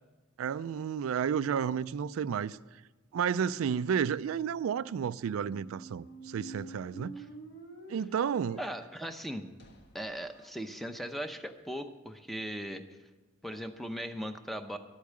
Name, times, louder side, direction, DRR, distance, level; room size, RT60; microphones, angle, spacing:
voice 1, 0.4-2.6 3.1-7.1 7.9-8.6, right 7 dB, 85° right, 0.3 m, -31 dB
sound 1, 5.3-11.2, right 2 dB, 55° left, 1.3 m, -49 dB
voice 2, 8.6-9.5 9.9-12.8 13.4-14.8, equal, ahead, 0.7 m, -38 dB
12.5 x 8.4 x 7.4 m
head